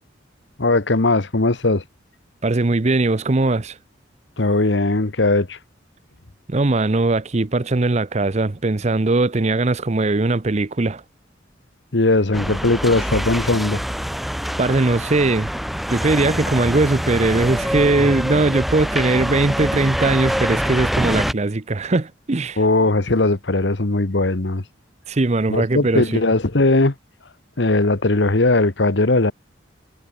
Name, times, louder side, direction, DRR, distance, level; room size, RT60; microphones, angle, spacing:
voice 1, 0.6-1.8 4.4-5.6 11.9-13.8 22.6-24.6 25.5-26.9 27.6-29.3, left 2 dB, 65° left, 1.3 m, -18 dB
voice 2, 2.4-3.8 6.5-11.0 14.6-15.5 15.9-22.6 25.1-26.2, right 2 dB, 35° right, 0.7 m, -20 dB
sound 1, 12.3-21.3, equal, ahead, 1.4 m, -25 dB
head